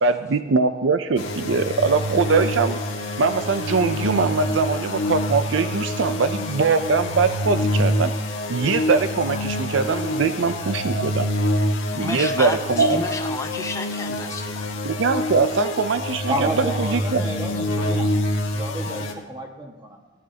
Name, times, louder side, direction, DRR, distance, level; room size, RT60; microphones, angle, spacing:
voice 1, 0.0-2.8 3.2-8.1 8.5-11.3 11.9-13.0 14.8-17.2, right 4 dB, 75° right, 10 dB, 0.5 m, -22 dB
sound 1, 1.2-19.1, left 1 dB, 85° left, 1.6 m, -26 dB
voice 2, 12.0-14.7, left 2 dB, 15° left, 5 dB, 0.8 m, -30 dB
voice 3, 16.3-18.1 18.5-20.0, right 1 dB, 20° right, 0 dB, 1.6 m, -30 dB
17.5 x 12.5 x 2.8 m, 1.2 s
head